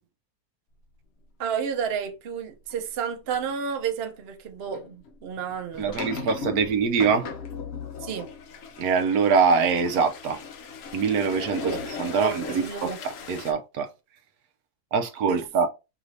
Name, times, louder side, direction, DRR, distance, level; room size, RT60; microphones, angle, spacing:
voice 1, 1.4-6.6 8.0-8.3 11.6-11.9 12.1-13.0 15.3-15.4, right 7 dB, 55° right, 0.8 m, -31 dB
sound 1, 2.7-2.8 3.3-3.5 4.6-13.5, left 5 dB, 60° left, 0.6 m, -38 dB
voice 2, 5.8-7.3 8.8-10.4 10.9-11.7 12.0-13.9 14.9-15.7, right 5 dB, 70° right, 1.1 m, -24 dB
4.7 x 2.6 x 3.2 m
omnidirectional pair, 1.7 m